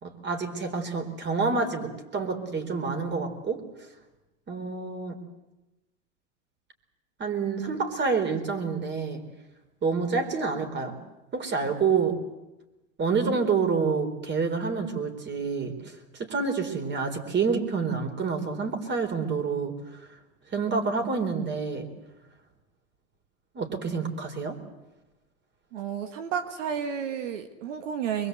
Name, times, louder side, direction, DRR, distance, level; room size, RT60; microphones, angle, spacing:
voice 1, 0.0-3.6 4.5-5.2 7.2-9.2 9.8-11.0 11.3-12.2 13.0-15.7 16.1-19.7 20.5-21.9 23.5-24.6, right 5 dB, 30° right, 6 dB, 4.2 m, -28 dB
voice 2, 25.7-28.3, right 8 dB, 85° right, 8 dB, 1.7 m, -31 dB
24.5 x 22.0 x 8.2 m, 1.0 s
supercardioid pair, 105°, 36 cm